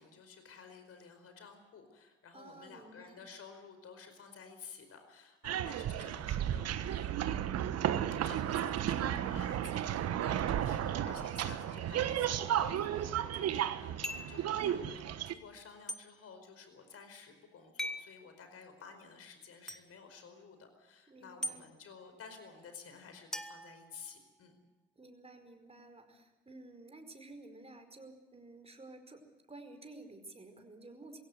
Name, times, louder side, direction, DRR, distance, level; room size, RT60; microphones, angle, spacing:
voice 1, 0.0-7.5 8.2-24.6, left 5 dB, 50° left, 7 dB, 4.9 m, -53 dB
voice 2, 2.3-3.2 21.1-21.6 24.9-29.2 29.5-31.2, right 2 dB, 20° right, 6 dB, 5.0 m, -52 dB
sound 1, 5.4-15.3, right 10 dB, 55° right, 1.3 m, -33 dB
sound 2, 14.0-14.4 15.9-16.0 17.8-18.1 19.7-19.8 21.4-21.6 23.3-24.4, left 1 dB, ahead, 1.8 m, -40 dB
22.5 x 16.5 x 8.1 m, 1.1 s
hypercardioid pair, 55°, 30 cm